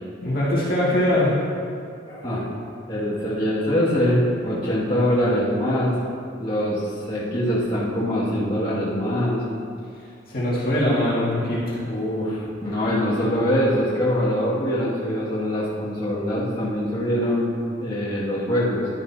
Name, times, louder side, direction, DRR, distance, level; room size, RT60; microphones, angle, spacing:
voice 1, 0.2-1.4 10.3-11.8, left 1 dB, 45° left, -8 dB, 2.2 m, -21 dB
voice 2, 2.1-2.5 2.9-6.0 6.4-9.4 11.8-18.9, equal, 25° left, -10 dB, 2.2 m, -23 dB
12.0 x 10.5 x 2.9 m, 2.4 s
head